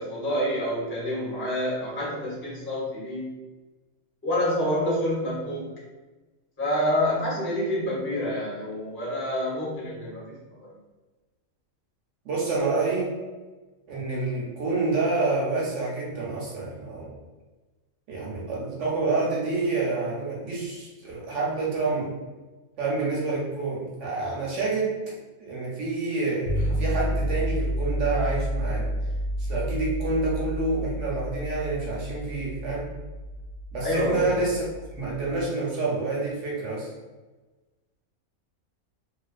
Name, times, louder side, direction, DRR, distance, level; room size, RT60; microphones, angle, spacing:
voice 1, 0.0-3.3 4.2-5.7 6.6-10.7 33.8-34.4, left 1 dB, 15° left, -6 dB, 0.4 m, -27 dB
voice 2, 12.2-13.1 13.9-17.2 18.1-22.1 22.8-25.0 25.4-28.9 29.4-32.9 33.7-34.6 34.9-36.9, right 3 dB, 65° right, -4 dB, 0.9 m, -28 dB
sound 1, 26.5-35.4, equal, 85° left, 1.1 m, -30 dB
2.3 x 2.3 x 2.3 m, 1.2 s
omnidirectional pair, 1.5 m